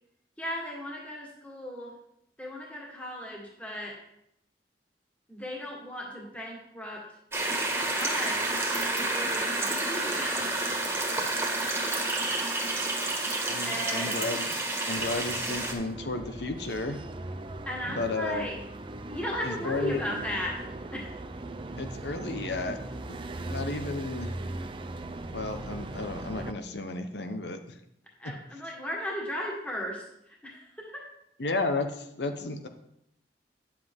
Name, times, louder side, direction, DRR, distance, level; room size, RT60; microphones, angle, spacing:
voice 1, 0.4-2.0 2.4-4.0 5.3-7.0 8.0-8.5 9.0-10.3 13.6-14.2 17.6-18.6 19.1-20.6 20.9-21.2 28.2-31.0, equal, 10° left, -3 dB, 1.6 m, -36 dB
sound 1, 7.3-15.7, right 2 dB, 15° right, 1.5 m, -29 dB
voice 2, 13.4-14.5 14.9-17.0 17.9-18.5 19.4-20.0 21.8-22.8 23.1-23.2 23.5-24.4 25.3-27.7 31.4-32.7, left 3 dB, 70° left, 7 dB, 0.9 m, -33 dB
sound 2, 15.0-26.5, right 2 dB, 30° right, 0.5 m, -39 dB
9.6 x 7.5 x 3.7 m, 0.78 s
head